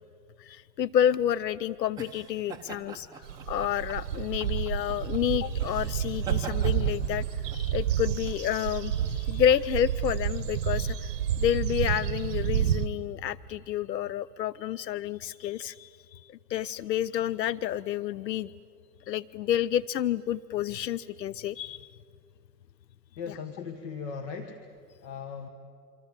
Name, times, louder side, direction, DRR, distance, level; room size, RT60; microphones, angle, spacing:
voice 1, 0.4-7.2 7.5-11.1 11.4-18.5 19.1-21.9, left 10 dB, 80° left, 18 dB, 0.7 m, -29 dB
sound 1, 0.9-10.1, right 6 dB, 5° right, 1.1 m, -45 dB
sound 2, 3.2-12.9, right 9 dB, 45° right, 1.3 m, -30 dB
voice 2, 23.2-24.6 25.0-25.5, left 6 dB, 30° left, 6 dB, 1.4 m, -38 dB
27.0 x 25.5 x 7.4 m, 2.3 s
hypercardioid pair, 130°, 49 cm